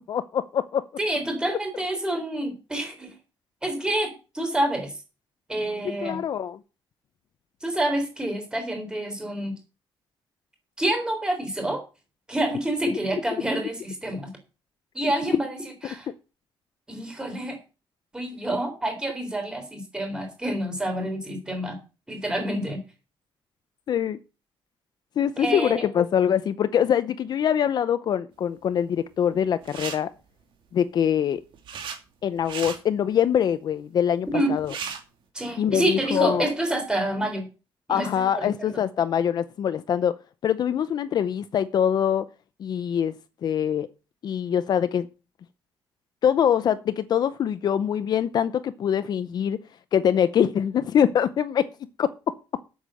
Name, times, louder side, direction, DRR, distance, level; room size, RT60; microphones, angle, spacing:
voice 1, 0.1-0.8 6.0-6.6 23.9-24.2 25.2-30.1 30.7-31.4 32.2-34.7 35.6-36.5 37.9-40.2 40.4-42.3 42.6-43.1 43.4-43.9 44.2-45.1 46.2-49.6 49.9-51.7 52.0-52.1, left 9 dB, 50° left, 0.7 m, -24 dB
voice 2, 1.0-3.1 3.6-4.9 5.5-6.2 7.6-9.5 10.8-11.8 12.3-14.3 14.9-16.1 16.9-17.6 18.1-21.8 22.1-22.8 25.4-25.8 34.3-34.5 35.3-37.4 37.9-38.8, right 1 dB, 10° right, 3.8 m, -28 dB
sound 1, 29.6-30.0 31.2-32.0 32.4-32.8 34.3-34.4 34.6-35.0, right 7 dB, 65° right, 2.5 m, -35 dB
8.4 x 7.2 x 7.6 m
cardioid pair, 155°, 9 cm